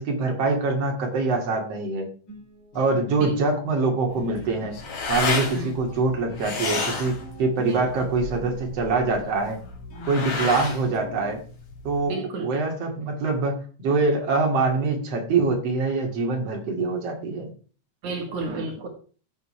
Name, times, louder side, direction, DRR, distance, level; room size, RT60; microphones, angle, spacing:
voice 1, 0.0-2.1 2.7-4.8 5.1-9.6 10.1-11.4 11.8-17.5, right 3 dB, 55° right, 1 dB, 3.5 m, -24 dB
Guitar, 2.3-11.4, right 1 dB, 40° left, 4.2 m, -45 dB
sound 1, 4.1-12.0, left 3 dB, 70° left, 3.9 m, -31 dB
voice 2, 9.9-10.3 12.1-12.5 18.0-18.9, right 2 dB, 80° right, 2 dB, 3.2 m, -33 dB
15.0 x 7.7 x 3.3 m, 0.39 s
omnidirectional pair, 3.3 m